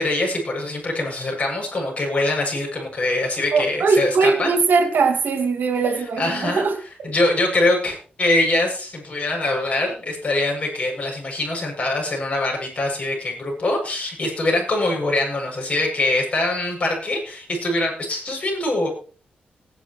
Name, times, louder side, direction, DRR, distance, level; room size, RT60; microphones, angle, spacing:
voice 1, 0.0-4.6 6.2-6.6 7.0-18.9, left 2 dB, 40° left, -1 dB, 7.8 m, -23 dB
voice 2, 3.5-6.8, right 4 dB, 70° right, 7 dB, 2.3 m, -20 dB
19.0 x 11.0 x 3.2 m, 0.38 s
wide cardioid pair, 105°, 3 cm